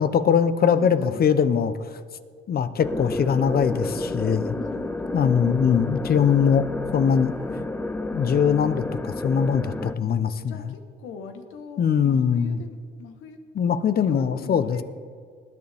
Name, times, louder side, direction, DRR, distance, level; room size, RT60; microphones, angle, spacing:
voice 1, 0.0-1.7 2.5-4.5 5.1-6.7 6.9-7.3 8.1-10.5 11.8-12.6 13.6-14.8, left 7 dB, 50° left, 12 dB, 0.7 m, -21 dB
voice 2, 0.7-1.3 3.7-5.5 7.1-7.7 9.5-9.6 10.4-13.4 14.0-14.8, left 5 dB, 90° left, 6 dB, 1.3 m, -42 dB
sound 1, 2.8-9.9, left 2 dB, 10° left, 0.5 m, -30 dB
20.0 x 9.5 x 3.5 m, 2.1 s
cardioid pair, 90°, 20 cm